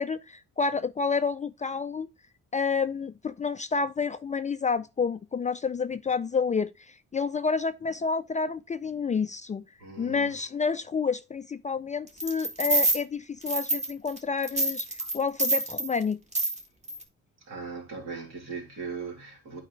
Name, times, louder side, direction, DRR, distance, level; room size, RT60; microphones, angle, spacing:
voice 1, 0.0-2.1 2.5-9.6 10.0-14.9 15.1-16.2, left 5 dB, 25° left, 0.4 m, -29 dB
voice 2, 9.8-10.3 15.0-15.1 17.4-19.6, right 5 dB, 65° right, 3.0 m, -39 dB
sound 1, 12.2-13.0 13.5-14.2 14.4-15.9 16.3-16.6 16.9-17.0, right 2 dB, 20° right, 1.7 m, -26 dB
8.9 x 4.9 x 3.1 m
cardioid pair, 90°, 30 cm